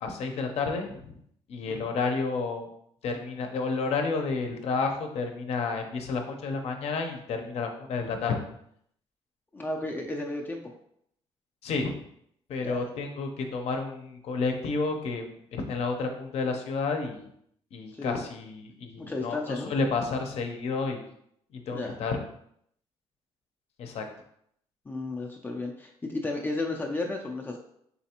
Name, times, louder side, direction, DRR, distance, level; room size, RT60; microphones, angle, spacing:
voice 1, 0.0-1.1 1.5-2.7 3.0-8.4 11.6-11.9 12.5-17.3 17.7-19.4 19.7-21.0 21.5-22.2 23.8-24.0, left 4 dB, 65° left, 4 dB, 0.6 m, -30 dB
voice 2, 9.5-10.6 12.6-13.0 17.9-18.2 19.0-19.7 21.7-22.0 24.9-27.6, left 2 dB, 15° left, 0 dB, 0.4 m, -33 dB
4.0 x 3.3 x 2.9 m, 0.71 s
cardioid pair, 105°, 11 cm